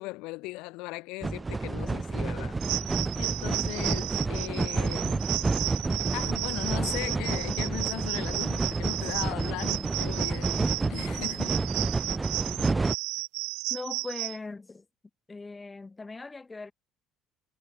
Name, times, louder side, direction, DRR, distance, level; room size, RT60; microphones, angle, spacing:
voice 1, 0.0-2.6 3.2-5.2 6.1-11.9, left 23 dB, 80° left, 4.5 m, -38 dB
sound 1, 1.2-12.9, right 3 dB, 15° right, 2.9 m, -30 dB
sound 2, 2.6-14.4, right 30 dB, 85° right, 2.3 m, -34 dB
voice 2, 13.7-14.8 15.3-16.7, left 3 dB, 15° left, 2.9 m, -40 dB
cardioid pair, 110°, 0 cm